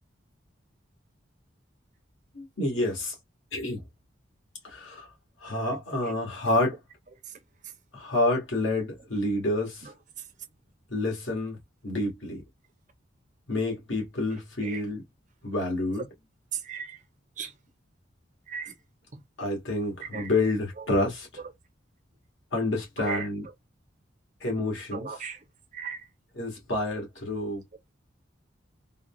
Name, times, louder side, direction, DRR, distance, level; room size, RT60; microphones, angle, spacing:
voice 1, 2.3-3.1 3.5-3.8 4.6-5.1 5.4-6.8 7.9-9.9 10.9-11.6 11.8-12.4 13.5-15.0 15.4-16.0 19.4-21.3 22.5-23.4 24.4-25.1 26.3-27.6, left 2 dB, 70° left, 1.5 m, -28 dB
voice 2, 16.5-17.0 17.4-17.5 18.5-18.7 19.1-19.2 20.1-20.3 20.8-20.9 23.0-23.3 24.9-25.4 25.7-26.1, right 6 dB, 40° right, 0.5 m, -36 dB
3.6 x 2.2 x 2.3 m
head